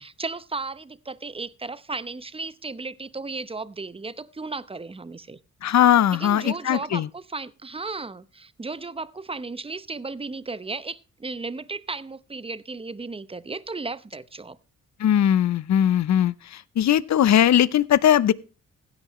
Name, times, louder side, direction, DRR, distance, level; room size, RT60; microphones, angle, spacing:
voice 1, 0.0-5.4 6.1-14.6, right 3 dB, 20° right, 0.8 m, -35 dB
voice 2, 5.6-7.1 15.0-18.3, left 10 dB, 65° left, 0.7 m, -19 dB
16.0 x 9.8 x 3.1 m
cardioid pair, 85°, 30 cm